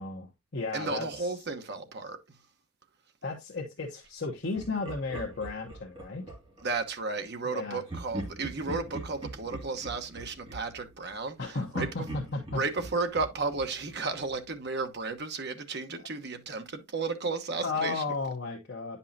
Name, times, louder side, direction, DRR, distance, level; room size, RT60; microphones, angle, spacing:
voice 1, 0.0-1.4 3.2-6.3 7.4-7.8 11.4-12.6 17.6-19.0, left 3 dB, 55° left, 1.0 m, -34 dB
voice 2, 0.7-2.2 6.6-11.9 12.5-18.0, right 4 dB, 50° right, 1.1 m, -33 dB
Laughter, 4.5-6.7 7.9-11.4 11.7-14.5, right 1 dB, 25° right, 2.4 m, -42 dB
9.7 x 5.5 x 2.7 m
head